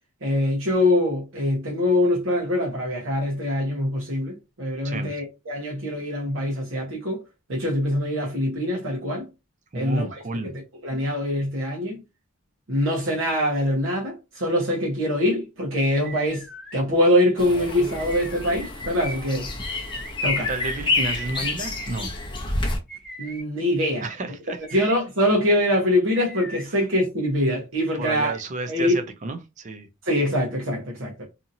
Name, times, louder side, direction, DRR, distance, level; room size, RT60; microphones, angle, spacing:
voice 1, 0.2-7.2 7.5-9.3 9.7-10.0 10.8-12.0 12.7-16.4 16.7-19.5 20.2-20.5 23.2-24.1 24.7-28.3 28.7-29.0 30.0-31.2, left 1 dB, 75° right, 0.9 m, -23 dB
voice 2, 9.7-10.5 20.2-22.1 24.0-24.9 26.7-26.8 28.0-29.9, right 3 dB, 35° right, 0.4 m, -32 dB
sound 1, 16.0-16.8 17.9-18.6 19.6-20.1 21.1-21.9 22.9-23.4 24.5-25.0 26.1-26.7, right 1 dB, 5° right, 0.8 m, -41 dB
sound 2, 17.4-22.8, left 3 dB, 25° left, 0.6 m, -28 dB
2.8 x 2.7 x 2.6 m
head